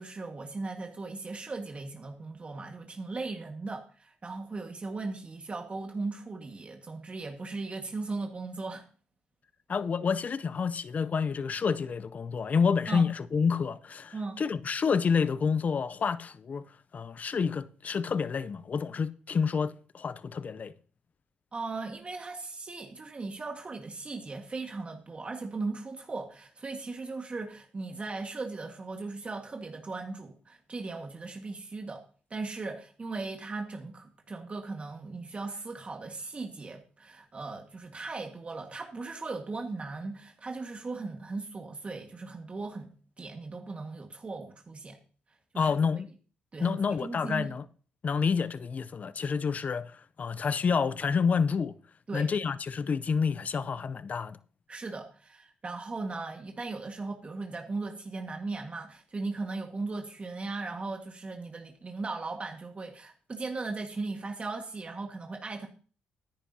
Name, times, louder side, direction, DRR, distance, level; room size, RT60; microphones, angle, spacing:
voice 1, 0.0-8.9 12.9-13.1 14.1-14.4 21.5-32.0 32.3-45.0 45.5-46.0 46.5-47.5 52.1-52.3 54.7-65.7, right 3 dB, 35° right, 1.6 m, -38 dB
voice 2, 9.7-16.6 16.9-20.7 45.6-46.1 46.6-47.6 48.0-51.7 52.1-54.4, left 5 dB, 45° left, 0.6 m, -29 dB
14.5 x 10.0 x 2.8 m
supercardioid pair, 65°, 4 cm